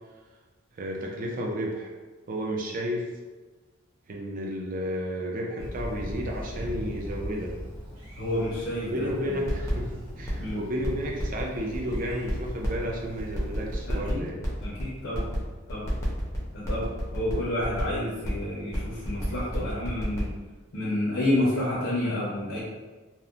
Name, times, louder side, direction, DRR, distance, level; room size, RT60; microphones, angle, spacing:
voice 1, 0.7-1.9 2.3-3.1 4.1-7.5 8.9-14.4, equal, 40° right, -1 dB, 0.4 m, -32 dB
Thunder, 5.6-14.0, equal, 85° right, 0.8 m, -40 dB
voice 2, 8.2-9.1 10.4-10.6 13.9-14.2 14.6-15.3 15.7-15.9 16.5-20.3 20.7-22.6, left 1 dB, 60° left, -6 dB, 0.6 m, -29 dB
sound 1, 9.1-9.2 9.5-10.5 10.8-12.8 13.2-15.4 15.7-18.0 18.2-18.3 18.6-20.2, equal, 15° left, 0.5 m, -36 dB
2.8 x 2.1 x 2.4 m, 1.3 s
head